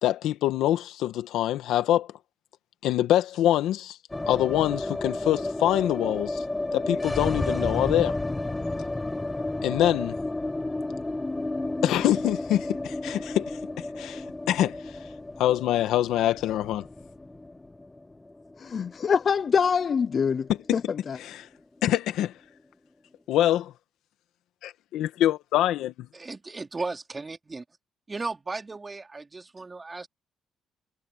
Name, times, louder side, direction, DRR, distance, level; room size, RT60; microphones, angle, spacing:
voice 1, 0.0-2.1 2.8-4.0 4.3-6.4 6.7-8.2 9.6-10.2 11.8-13.5 13.8-14.8 15.4-16.9 20.7-20.8 21.2-21.5 21.8-22.3 23.3-23.7 24.6-26.1, left 13 dB, 85° left, 1.5 m, -25 dB
sound 1, 4.1-20.2 20.5-20.6 20.8-21.6, left 2 dB, 15° left, 1.5 m, -32 dB
voice 2, 18.6-21.2, left 6 dB, 45° left, 0.6 m, -25 dB
voice 3, 26.1-27.6 28.1-30.1, right 3 dB, 25° right, 3.0 m, -35 dB
cardioid pair, 90°, 0 cm